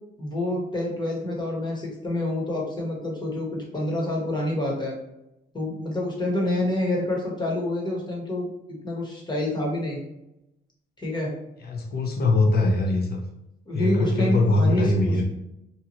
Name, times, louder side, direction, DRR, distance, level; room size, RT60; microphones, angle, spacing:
voice 1, 0.2-4.9 5.5-10.0 11.0-11.3 13.7-15.2, left 1 dB, 20° left, -2 dB, 1.0 m, -27 dB
voice 2, 11.7-13.2 13.7-15.2, left 2 dB, 50° left, 1 dB, 0.7 m, -22 dB
2.7 x 2.3 x 2.9 m, 0.87 s
cardioid pair, 90°, 20 cm